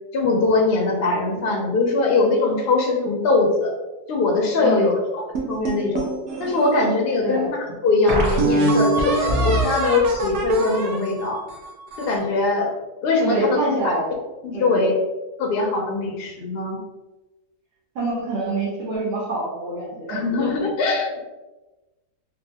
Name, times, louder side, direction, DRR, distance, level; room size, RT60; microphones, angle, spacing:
voice 1, 0.1-3.7 4.1-5.2 5.5-6.1 6.4-9.2 9.4-11.4 12.0-12.7 13.0-13.6 13.8-13.9 14.4-14.9 15.4-16.8 20.1-21.2, left 3 dB, 70° left, 0 dB, 0.5 m, -21 dB
voice 2, 4.6-4.9 7.2-7.5 13.2-14.1 14.5-14.9 17.9-20.2, right 1 dB, 80° right, -8 dB, 1.6 m, -25 dB
sound 1, 5.3-6.9 7.5-7.6 8.1-12.3, right 2 dB, 65° right, 0.7 m, -24 dB
4.0 x 2.2 x 2.8 m, 1.1 s
omnidirectional pair, 1.7 m